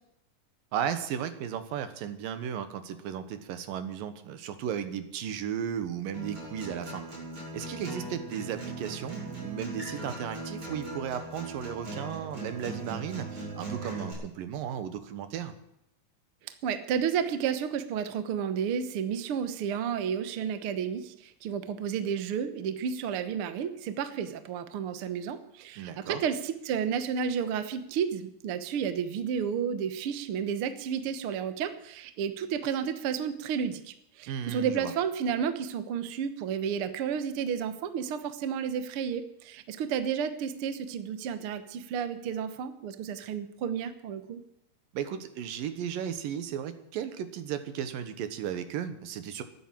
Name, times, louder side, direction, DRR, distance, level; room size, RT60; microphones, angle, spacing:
voice 1, 0.7-7.0 7.5-15.5 25.8-26.2 34.3-34.9 44.9-49.4, right 9 dB, 80° right, 10 dB, 2.9 m, -35 dB
Acoustic guitar, 6.1-14.1, right 2 dB, 40° right, 6.6 m, -39 dB
voice 2, 16.6-44.4, right 7 dB, 65° right, 10 dB, 1.4 m, -31 dB
13.0 x 10.0 x 9.1 m, 0.79 s
omnidirectional pair, 4.0 m